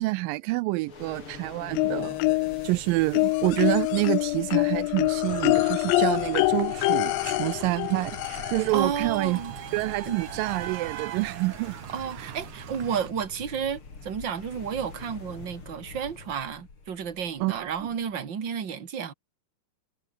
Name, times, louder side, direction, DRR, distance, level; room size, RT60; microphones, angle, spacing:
voice 1, 0.0-2.2 2.6-9.4 9.7-11.8 12.2-12.3 17.4-17.9, right 21 dB, 85° right, 2.0 m, -27 dB
sound 1, 0.8-18.2, left 4 dB, 35° left, 4.6 m, -46 dB
sound 2, 1.7-2.7 3.1-8.8 10.0-10.1 10.5-10.6, left 23 dB, 85° left, 2.0 m, -25 dB
sound 3, 5.3-13.1, right 13 dB, 65° right, 2.2 m, -41 dB
voice 2, 8.7-9.5 10.1-10.2 11.9-19.1, right 7 dB, 35° right, 2.4 m, -32 dB
omnidirectional pair, 4.5 m